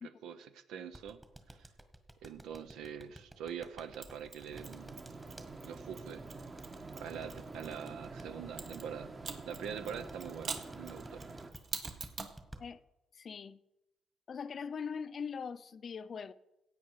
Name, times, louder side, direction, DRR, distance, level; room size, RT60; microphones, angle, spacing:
voice 1, 0.0-1.2 1.5-1.7 2.2-5.0 5.6-6.2 7.0-9.1 9.5-11.2, right 8 dB, 85° right, 0.9 m, -44 dB
sound 1, 0.9-5.5 6.6-8.3 9.8-12.6, right 1 dB, 15° right, 1.6 m, -52 dB
Mechanisms, 4.0-7.9 8.6-12.4, right 5 dB, 55° right, 1.5 m, -46 dB
sound 2, 4.5-11.5, right 3 dB, 30° right, 1.4 m, -47 dB
voice 2, 13.1-13.6 14.3-16.3, left 6 dB, 50° left, 0.5 m, -41 dB
15.5 x 8.8 x 4.8 m
cardioid pair, 90°, 0 cm